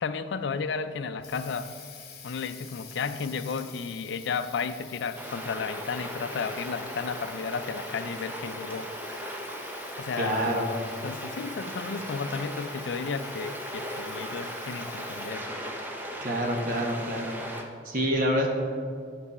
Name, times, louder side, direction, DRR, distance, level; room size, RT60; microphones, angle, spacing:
voice 1, 0.0-1.7 2.2-8.9 10.0-10.5 11.0-15.5, left 5 dB, 75° left, 11 dB, 0.4 m, -33 dB
Water tap faucet, 0.9-15.6, left 7 dB, 50° left, 1.0 m, -49 dB
sound 1, 5.2-17.6, equal, 10° right, 0.6 m, -38 dB
voice 2, 10.2-10.7 16.2-17.3 17.8-18.5, equal, 45° right, 0 dB, 1.2 m, -27 dB
9.5 x 5.5 x 4.2 m, 2.2 s
head